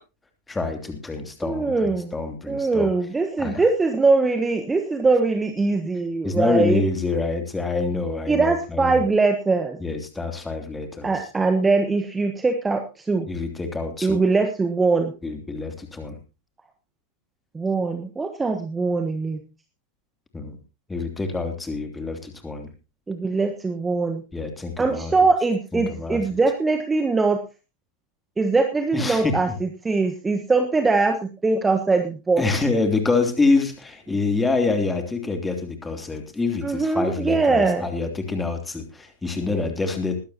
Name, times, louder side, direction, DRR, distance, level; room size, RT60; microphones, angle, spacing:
voice 1, 0.5-2.9 3.4-3.6 6.2-9.0 9.8-11.3 13.3-14.2 15.2-16.2 20.3-20.6 20.9-22.7 24.3-25.1 25.7-26.4 28.9-29.3 32.4-40.2, left 3 dB, 10° left, 5 dB, 3.0 m, -26 dB
voice 2, 1.4-2.1 2.5-6.8 8.3-9.8 11.0-13.3 14.0-15.1 17.5-19.4 23.1-24.2 24.8-27.4 28.4-32.4 36.6-37.9, right 3 dB, 10° right, 6 dB, 1.4 m, -22 dB
20.5 x 12.5 x 2.9 m, 0.30 s
figure-of-eight pair, 90°, 0 cm